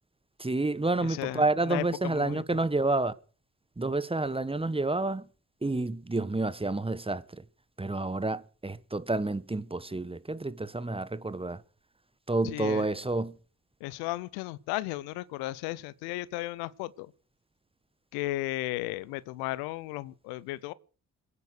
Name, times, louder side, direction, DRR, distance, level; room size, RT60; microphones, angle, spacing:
voice 1, 0.4-3.1 3.8-5.3 5.6-7.4 7.8-11.6 12.3-13.3, right 2 dB, 15° right, 1.2 m, -29 dB
voice 2, 1.0-2.4 12.4-12.9 13.8-17.1 18.1-20.7, left 18 dB, 85° left, 0.7 m, -35 dB
23.0 x 9.8 x 6.5 m
hypercardioid pair, 45°, 37 cm